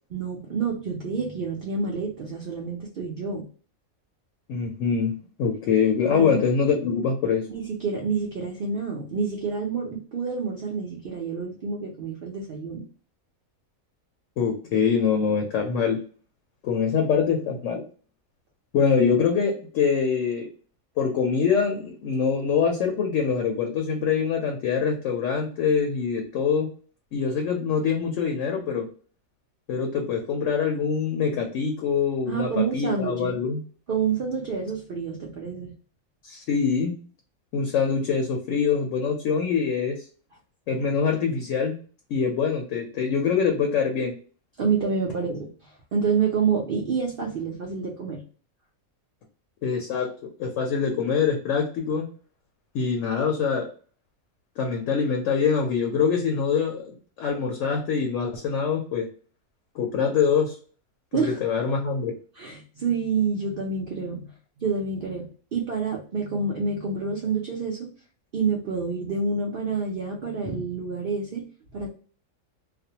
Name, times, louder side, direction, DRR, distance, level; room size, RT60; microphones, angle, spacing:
voice 1, 0.1-3.5 6.1-6.4 7.5-12.9 32.3-33.4 33.9-35.7 44.6-48.2 61.1-61.4 62.4-67.9 68.3-71.5 71.7-71.9, right 5 dB, 65° right, -1 dB, 0.5 m, -28 dB
voice 2, 4.5-5.1 5.4-7.5 14.4-16.0 16.6-17.8 18.7-20.5 21.0-26.7 27.1-28.9 29.7-33.6 36.2-37.0 37.5-40.0 40.7-41.7 42.1-44.1 49.6-50.1 50.4-52.1 52.7-53.7 54.6-59.1 59.7-60.6 61.1-62.1, left 6 dB, 70° left, 2 dB, 0.8 m, -24 dB
2.4 x 2.1 x 2.7 m, 0.42 s
omnidirectional pair, 1.5 m